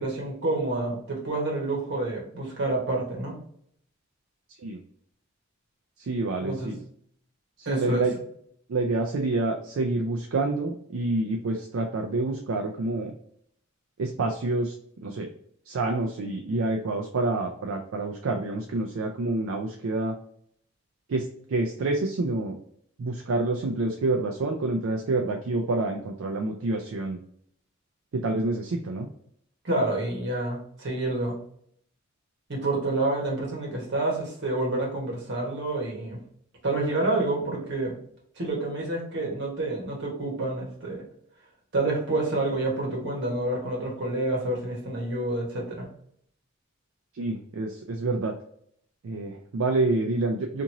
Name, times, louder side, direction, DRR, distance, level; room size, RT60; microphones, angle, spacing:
voice 1, 0.0-3.4 6.4-6.7 7.6-8.1 29.6-31.4 32.5-36.2 36.6-38.0 38.4-41.0 41.7-45.9, right 2 dB, 60° right, -1 dB, 1.1 m, -28 dB
voice 2, 6.0-6.8 7.6-8.1 8.7-13.1 14.0-14.7 15.0-15.3 15.7-20.1 21.1-22.6 23.0-27.2 28.1-29.1 47.2-48.3 49.0-50.6, right 2 dB, 75° right, 3 dB, 0.4 m, -27 dB
2.9 x 2.6 x 2.6 m, 0.65 s
head